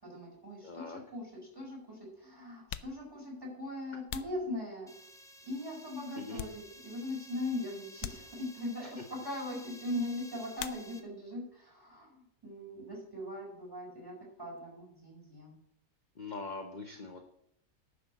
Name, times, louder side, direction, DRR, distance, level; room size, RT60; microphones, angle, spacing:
voice 1, 0.0-4.9 5.4-15.6, left 1 dB, 15° right, -2 dB, 5.0 m, -40 dB
voice 2, 0.6-1.0 6.1-6.4 8.8-8.9 16.2-17.3, left 3 dB, 35° left, 4 dB, 1.0 m, -42 dB
sound 1, 2.6-5.2 5.7-7.1 7.4-7.5 8.0-8.8 10.5-11.3 11.6-12.3 12.6-14.7, left 11 dB, 85° left, 1.1 m, -47 dB
sound 2, 4.9-11.0, equal, ahead, 1.3 m, -54 dB
10.0 x 6.4 x 7.0 m, 0.76 s
omnidirectional pair, 1.5 m